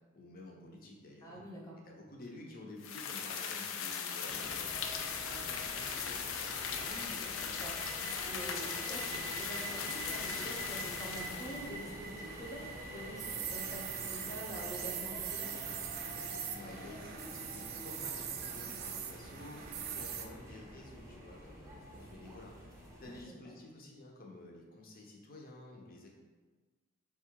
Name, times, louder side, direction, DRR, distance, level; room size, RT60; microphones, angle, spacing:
voice 1, 0.1-1.4 1.8-6.9 16.5-26.1, left 1 dB, 45° left, -1 dB, 0.7 m, -51 dB
voice 2, 1.2-1.8 6.9-15.7 23.0-23.5, equal, 15° left, -3 dB, 0.8 m, -46 dB
sound 1, 2.8-11.8, left 7 dB, 75° left, 0.4 m, -39 dB
sound 2, 4.3-23.2, right 1 dB, 15° right, 0.8 m, -47 dB
sound 3, 10.5-20.3, right 7 dB, 50° right, 0.4 m, -42 dB
4.3 x 2.4 x 4.5 m, 1.3 s
head